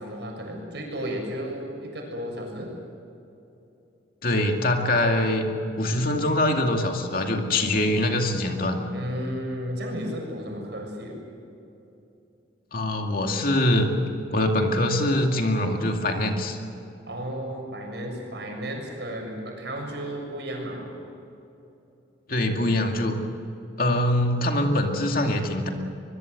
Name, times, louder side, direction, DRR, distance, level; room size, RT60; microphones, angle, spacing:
voice 1, 0.0-2.7 8.9-11.2 17.1-20.9, equal, 60° right, 1 dB, 7.0 m, -33 dB
voice 2, 4.2-5.4 5.8-8.8 12.7-13.9 14.3-16.6 22.3-23.2 23.8-25.7, left 1 dB, 50° left, 3 dB, 2.4 m, -23 dB
24.0 x 22.0 x 8.0 m, 2.8 s
head